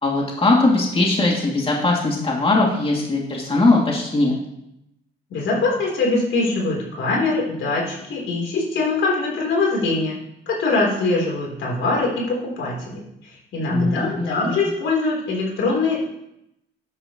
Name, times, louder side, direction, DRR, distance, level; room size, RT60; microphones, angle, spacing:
voice 1, 0.0-4.4 13.7-14.5, left 2 dB, 30° left, -2 dB, 2.7 m, -20 dB
voice 2, 5.3-10.2 10.5-13.0 13.5-16.0, left 3 dB, 75° left, -2 dB, 3.9 m, -22 dB
12.5 x 9.7 x 3.2 m, 0.81 s
cardioid pair, 90°, 20 cm